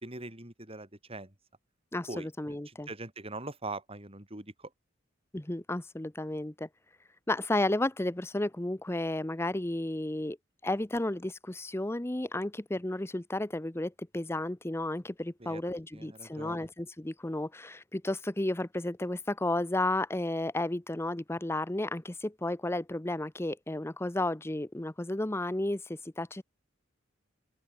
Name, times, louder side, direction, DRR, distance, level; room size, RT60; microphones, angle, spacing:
voice 1, 0.0-1.3 2.1-2.3 2.7-4.7 15.4-15.6 15.9-16.7, right 2 dB, 30° right, 5.3 m, -42 dB
voice 2, 1.9-2.9 5.3-6.7 7.3-10.4 10.6-26.4, left 1 dB, 15° left, 0.7 m, -33 dB
open air
head